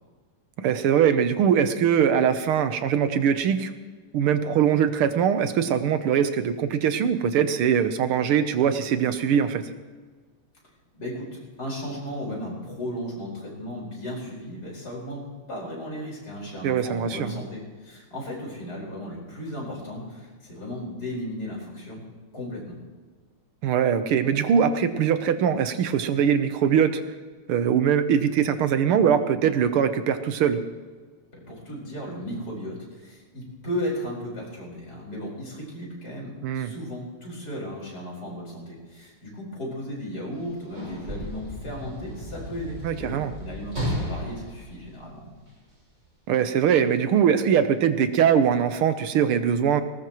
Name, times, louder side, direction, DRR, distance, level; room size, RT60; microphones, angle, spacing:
voice 1, 0.6-3.7 4.1-9.7 16.6-17.3 23.6-27.0 27.5-30.6 36.4-36.7 42.8-43.3 46.3-49.8, right 8 dB, 80° right, 10 dB, 1.8 m, -22 dB
voice 2, 11.0-22.0 22.3-22.8 31.3-45.3, equal, 45° left, -4 dB, 5.4 m, -35 dB
Sliding door / Slam, 40.3-45.7 46.6-46.7, equal, 30° right, 6.5 m, -34 dB
19.5 x 19.0 x 3.1 m, 1.4 s
omnidirectional pair, 2.4 m